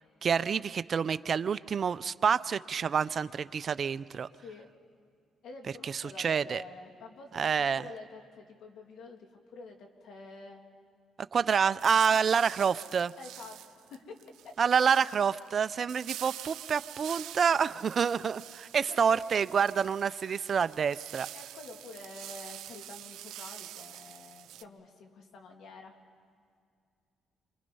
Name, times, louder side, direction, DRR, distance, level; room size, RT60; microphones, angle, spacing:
voice 1, 0.2-4.3 5.8-6.6 7.3-7.8 11.2-13.1 14.6-21.3, right 6 dB, 50° right, 16 dB, 0.5 m, -28 dB
voice 2, 4.4-4.7 5.4-10.6 12.1-12.2 13.2-14.2 14.4-14.5 18.9-19.2 21.3-25.9, left 3 dB, 75° left, 3 dB, 2.8 m, -48 dB
sound 1, 11.8-24.6, right 12 dB, 85° right, 0.7 m, -46 dB
29.0 x 25.5 x 5.5 m, 2.2 s
cardioid pair, 90°, 0 cm